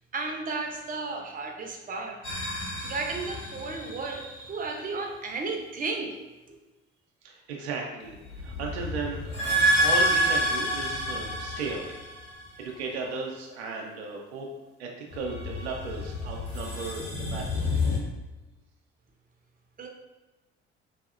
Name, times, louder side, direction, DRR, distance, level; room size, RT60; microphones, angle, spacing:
voice 1, 0.1-2.2 2.7-6.2 6.5-6.6 19.8-19.9, right 3 dB, 25° right, 2 dB, 0.7 m, -33 dB
sound 1, 2.2-4.2 8.1-12.6 15.1-18.0, equal, 85° left, 0.9 m, -28 dB
voice 2, 7.2-12.0 12.6-14.5 14.8-17.7, right 4 dB, 75° right, 0 dB, 0.6 m, -36 dB
4.1 x 2.7 x 2.4 m, 1.1 s
figure-of-eight pair, 50°, 33 cm